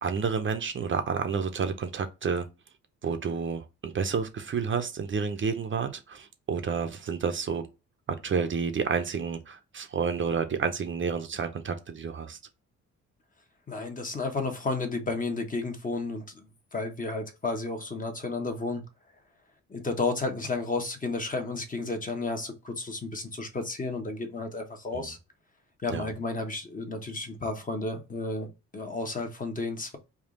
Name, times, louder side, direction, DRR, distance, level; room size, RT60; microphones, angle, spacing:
voice 1, 0.0-2.5 3.0-7.7 8.1-12.4 24.9-25.1 25.9-26.1, right 6 dB, 40° right, 0.6 m, -30 dB
voice 2, 13.7-16.5 16.7-18.8 19.7-25.2 25.8-30.0, left 3 dB, 25° left, 0.9 m, -32 dB
3.5 x 2.4 x 3.7 m
cardioid pair, 90°, 30 cm